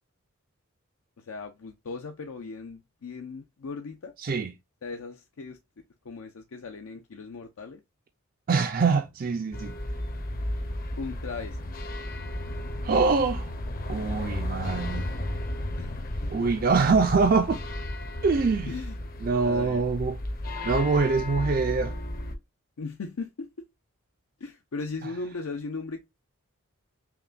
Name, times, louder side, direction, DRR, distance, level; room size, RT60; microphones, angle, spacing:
voice 1, 1.2-4.1 4.8-5.6 6.0-7.8 11.0-11.6 15.8-16.5 18.7-19.0 19.4-19.8 22.8-23.7 24.4-26.0, left 4 dB, 80° left, 0.6 m, -38 dB
voice 2, 4.2-4.5 8.5-9.7 12.8-13.5 13.9-15.3 16.3-17.6 18.2-18.7 19.2-20.2 20.6-22.0, right 4 dB, 40° right, 0.4 m, -24 dB
sound 1, 9.5-22.3, left 1 dB, 40° left, 0.7 m, -33 dB
5.7 x 2.2 x 2.4 m
head